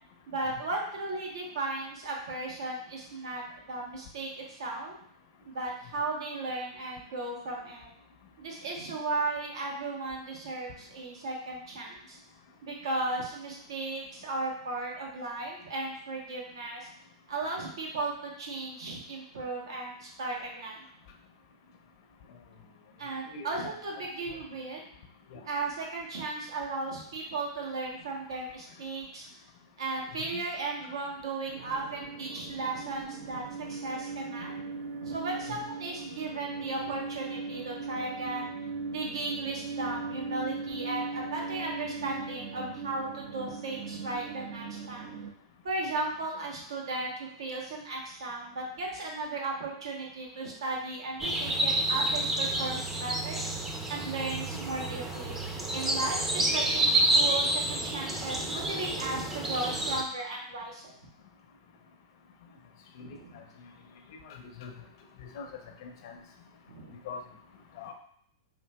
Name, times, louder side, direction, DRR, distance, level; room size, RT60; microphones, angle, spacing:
voice 1, 0.3-3.4 3.7-4.9 5.5-7.9 8.4-12.2 12.6-16.9 17.3-20.8 23.0-24.8 25.3-29.3 29.8-34.5 35.0-38.5 38.9-45.1 45.6-53.5 53.9-55.4 55.7-61.0 63.0-63.4 66.7-66.9, right 2 dB, 85° right, -1 dB, 1.0 m, -36 dB
voice 2, 23.3-23.8 25.3-25.4 30.3-30.4 35.5-35.6 63.0-63.4 64.2-64.7 65.2-65.5 65.8-66.2 67.0-67.2 67.8-67.9, left 5 dB, 60° left, 4 dB, 0.6 m, -43 dB
sound 1, 31.5-45.3, right 4 dB, 60° right, 0.5 m, -39 dB
sound 2, 51.2-60.0, right 1 dB, 10° right, 0.4 m, -29 dB
3.7 x 2.7 x 2.2 m, 0.67 s
hypercardioid pair, 125°, 2 cm